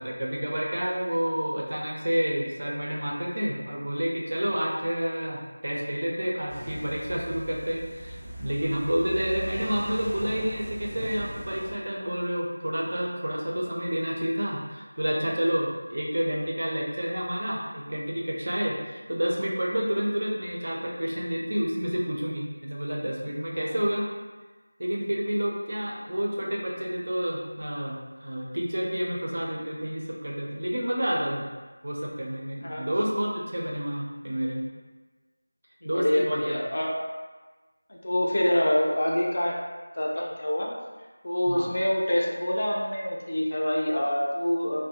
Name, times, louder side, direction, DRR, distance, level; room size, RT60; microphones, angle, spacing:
voice 1, 0.0-24.1 24.8-31.5 31.8-34.6 35.8-36.6 41.5-41.7, equal, 50° right, -3 dB, 0.5 m, -29 dB
sound 1, 6.5-11.7, right 1 dB, 10° right, 0.6 m, -39 dB
voice 2, 35.8-36.9 37.9-39.6 39.9-40.7 41.2-44.8, left 1 dB, 45° left, -2 dB, 0.4 m, -26 dB
2.4 x 2.1 x 2.8 m, 1.3 s
figure-of-eight pair, 170°, 0 cm